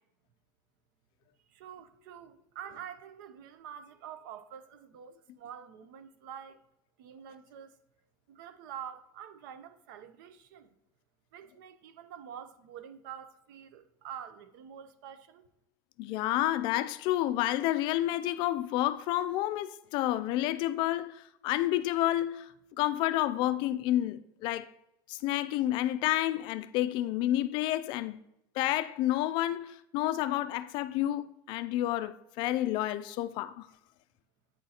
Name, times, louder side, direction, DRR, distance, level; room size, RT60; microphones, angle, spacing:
voice 1, 1.5-6.6 7.0-7.7 8.3-10.7 11.3-15.5, right 9 dB, 80° right, 0.6 m, -47 dB
voice 2, 16.0-22.5 22.8-24.7 25.1-28.2 28.6-33.7, left 14 dB, 50° left, 0.3 m, -30 dB
8.9 x 3.9 x 2.8 m
supercardioid pair, 145°, 11 cm